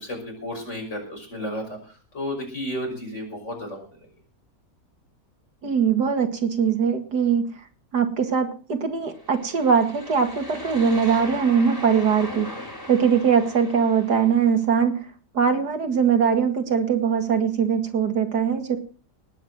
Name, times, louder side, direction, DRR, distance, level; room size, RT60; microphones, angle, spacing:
voice 1, 0.0-4.1, equal, 45° left, 2 dB, 6.3 m, -33 dB
voice 2, 5.6-7.5 7.9-12.5 12.9-15.0 15.3-18.8, right 6 dB, 75° right, 6 dB, 2.5 m, -21 dB
sound 1, 9.1-14.5, left 1 dB, 10° left, 3.4 m, -39 dB
19.0 x 9.0 x 6.2 m, 0.39 s
omnidirectional pair, 1.8 m